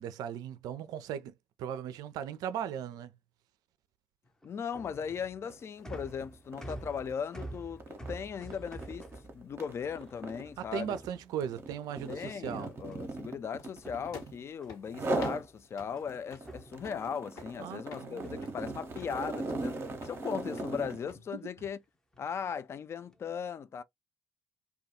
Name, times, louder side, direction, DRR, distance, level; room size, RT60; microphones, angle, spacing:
voice 1, 0.0-1.3 1.6-3.1 10.6-12.7 17.6-18.5, right 9 dB, 60° right, 0.4 m, -38 dB
sound 1, 4.2-11.8 12.9-13.4 13.7-16.1 16.4-17.7 18.2-19.9 20.3-20.8 21.0-21.4 22.1-22.5 23.0-23.3, right 1 dB, 10° left, 0.7 m, -49 dB
voice 2, 4.4-9.1 9.3-11.0 12.1-19.8 20.0-21.8 22.2-23.8, left 7 dB, 35° left, 0.3 m, -38 dB
sound 2, 5.4-5.6 6.0-14.4 14.9-15.5 15.9-21.1, right 2 dB, 35° right, 0.7 m, -38 dB
sound 3, 13.6-21.2, left 4 dB, 55° left, 1.0 m, -53 dB
2.3 x 2.2 x 2.7 m
hypercardioid pair, 55°, 7 cm